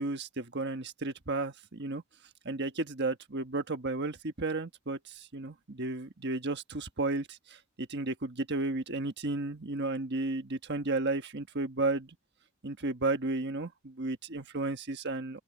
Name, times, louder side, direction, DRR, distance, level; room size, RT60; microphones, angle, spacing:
voice 1, 0.0-2.0 2.4-12.1 12.6-15.4, right 2 dB, 50° right, 1.4 m, -33 dB
open air
head